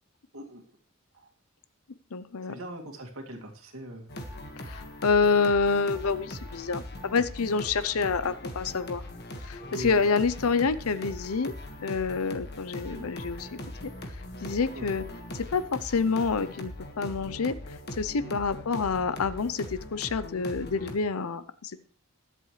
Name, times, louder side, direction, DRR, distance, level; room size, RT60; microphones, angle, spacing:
voice 1, 0.3-0.8 1.1-1.3 2.5-4.1 9.7-10.0 12.9-13.1 14.7-14.9 18.2-18.4, right 1 dB, 70° right, 2 dB, 2.3 m, -41 dB
voice 2, 2.1-2.6 4.6-9.0 9.4-11.5 11.8-13.9 14.4-15.0 15.3-17.6 17.9-21.8, left 4 dB, 80° left, 14 dB, 0.6 m, -28 dB
sound 1, 4.1-21.0, left 1 dB, 45° left, 1.7 m, -40 dB
21.5 x 7.8 x 3.2 m, 0.42 s
head